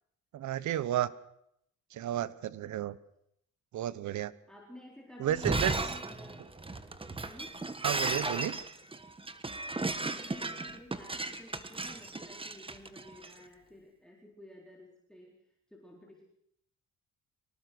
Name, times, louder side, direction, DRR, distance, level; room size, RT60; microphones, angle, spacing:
voice 1, 0.3-1.1 1.9-2.9 3.7-4.3 5.2-5.8 7.8-8.6, right 12 dB, 70° right, 18 dB, 1.1 m, -32 dB
voice 2, 4.5-6.5 7.2-7.6 9.8-15.4 15.7-16.2, left 1 dB, ahead, -2 dB, 4.3 m, -52 dB
Shatter, 5.3-13.3, right 2 dB, 15° right, 1.6 m, -35 dB
24.5 x 18.5 x 6.3 m, 0.74 s
cardioid pair, 90°, 30 cm